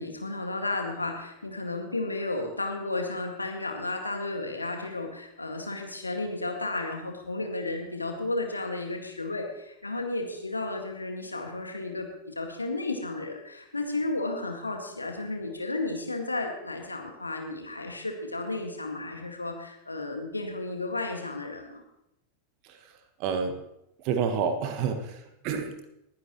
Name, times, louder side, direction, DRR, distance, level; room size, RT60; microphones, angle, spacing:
voice 1, 0.0-21.8, left 2 dB, 80° left, 3 dB, 2.0 m, -33 dB
voice 2, 23.2-23.6 24.0-25.9, right 6 dB, 40° right, 7 dB, 1.4 m, -29 dB
20.0 x 10.5 x 3.1 m, 0.82 s
figure-of-eight pair, 90°, 0 cm